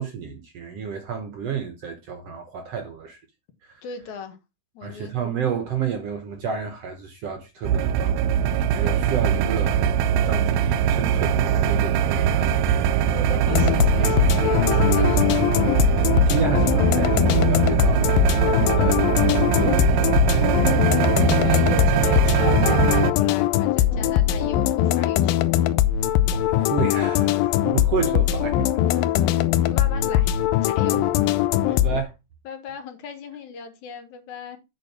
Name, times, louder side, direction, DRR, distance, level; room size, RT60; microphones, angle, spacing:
voice 1, 0.0-3.2 3.6-3.8 4.8-10.0 10.2-12.9 16.0-20.1 21.3-21.8 22.4-22.5 26.3-29.3 30.9-31.0 31.7-32.1, right 6 dB, 65° right, 1.7 m, -31 dB
voice 2, 3.8-4.4 4.7-5.2 13.1-15.3 20.9-21.1 21.4-25.7 29.3-30.3 30.6-31.1 31.7-31.8 32.4-34.6, left 6 dB, 65° left, 2.6 m, -37 dB
sound 1, 7.6-23.1, right 9 dB, 85° right, 2.3 m, -21 dB
sound 2, 13.5-32.0, left 12 dB, 85° left, 2.3 m, -21 dB
8.5 x 4.1 x 6.1 m
omnidirectional pair, 4.0 m